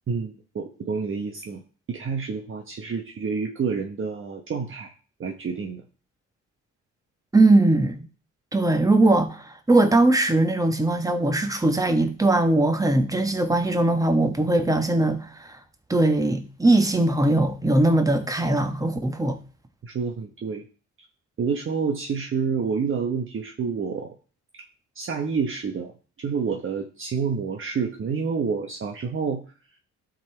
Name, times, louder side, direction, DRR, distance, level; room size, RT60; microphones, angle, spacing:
voice 1, 0.1-4.9 5.2-5.8 19.8-20.6 21.4-24.1 25.0-25.9 26.2-29.4, right 5 dB, 45° right, 1.0 m, -28 dB
voice 2, 7.3-8.1 8.5-15.6 15.9-19.4, right 2 dB, 10° right, 1.2 m, -20 dB
11.5 x 4.0 x 4.5 m
cardioid pair, 90°, 30 cm